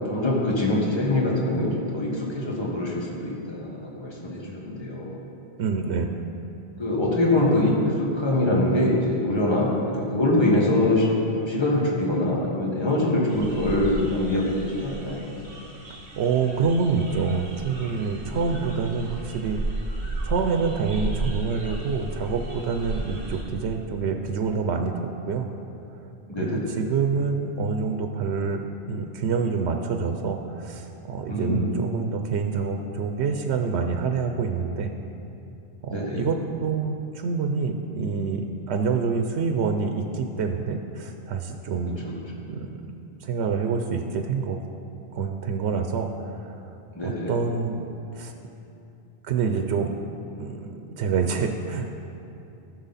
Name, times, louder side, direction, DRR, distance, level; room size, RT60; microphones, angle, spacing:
voice 1, 0.1-5.2 6.8-15.3 18.3-18.6 26.3-26.8 31.3-31.8 35.9-36.3 42.0-42.2 46.9-47.4, left 1 dB, 25° left, -4 dB, 1.6 m, -24 dB
voice 2, 5.6-6.1 16.2-19.6 20.2-25.5 26.4-28.6 28.9-34.9 35.8-42.1 42.4-42.7 43.2-44.6 45.1-46.1 46.4-46.5 47.0-47.9 48.2-48.3 49.2-49.9 50.4-51.9, right 5 dB, 85° right, 5 dB, 0.9 m, -27 dB
sound 1, 13.3-23.4, right 2 dB, 60° right, 1.7 m, -34 dB
13.5 x 6.4 x 4.1 m, 2.7 s
omnidirectional pair, 1.1 m